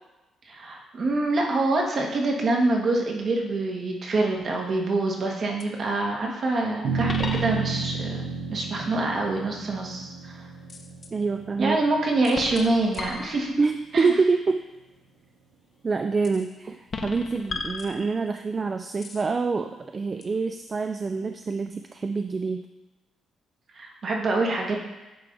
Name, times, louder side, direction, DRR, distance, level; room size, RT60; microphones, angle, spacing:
voice 1, 0.5-8.2 8.5-10.5 11.6-13.5 13.9-14.1 23.7-24.8, right 2 dB, 50° right, 0 dB, 1.3 m, -25 dB
sound 1, 4.5-4.9 5.6-5.7 7.1-8.0 10.7-11.1 12.2-13.8 16.2-16.5 16.9-18.5 19.0-19.3 20.2-20.3, left 3 dB, 40° left, 0.6 m, -36 dB
sound 2, 6.8-13.4, right 4 dB, 75° right, 0.8 m, -32 dB
voice 2, 11.1-11.8 13.6-14.6 15.8-22.6, right 4 dB, 35° right, 7 dB, 0.3 m, -26 dB
9.3 x 3.3 x 3.9 m, 1.1 s
cardioid pair, 90°, 0 cm